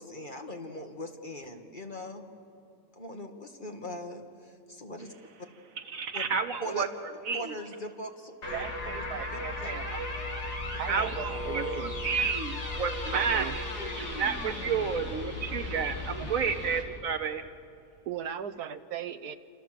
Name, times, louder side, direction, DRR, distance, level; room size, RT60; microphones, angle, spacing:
voice 1, 0.0-2.2 2.9-5.1 6.1-6.2 6.6-6.9 7.3-9.0 9.3-9.7, left 1 dB, 30° left, 4 dB, 1.8 m, -41 dB
voice 2, 5.9-6.9 7.2-7.5 10.9-13.6 13.9-17.4, right 6 dB, 60° right, 9 dB, 1.4 m, -31 dB
sound 1, 8.4-16.8, left 2 dB, 75° left, 3.7 m, -36 dB
voice 3, 8.5-10.2 10.8-11.9 13.1-13.6 16.2-16.3 18.1-19.4, right 8 dB, 75° right, 9 dB, 1.4 m, -38 dB
28.5 x 26.5 x 7.6 m, 2.5 s
omnidirectional pair, 1.7 m